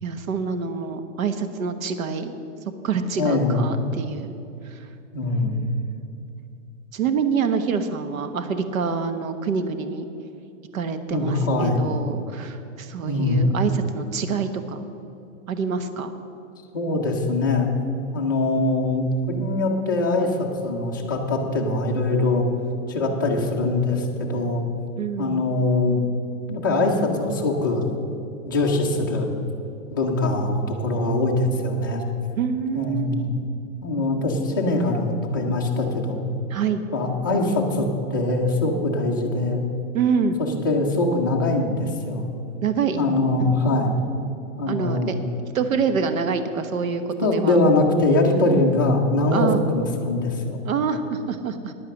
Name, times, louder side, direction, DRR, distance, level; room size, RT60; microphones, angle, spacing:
voice 1, 0.0-2.3 2.8-4.3 4.7-4.8 5.3-5.9 6.9-10.1 10.7-14.8 15.5-16.2 25.0-25.4 32.4-33.3 36.5-36.8 39.9-40.4 42.6-43.0 43.4-43.6 44.7-45.2 45.5-47.6 49.3-49.6 50.6-51.7, right 6 dB, 75° right, 9 dB, 1.1 m, -26 dB
voice 2, 3.2-3.6 5.1-5.6 11.1-11.8 13.0-13.4 16.7-17.7 18.1-20.4 20.6-22.4 22.9-24.6 25.2-26.0 26.5-27.9 28.5-29.3 29.9-32.0 32.7-33.3 33.8-36.2 36.9-39.6 40.4-42.3 42.9-44.0 44.6-45.3 47.2-50.6, left 2 dB, 15° left, -2 dB, 0.4 m, -22 dB
10.5 x 8.8 x 6.4 m, 2.7 s
hypercardioid pair, 175°, 41 cm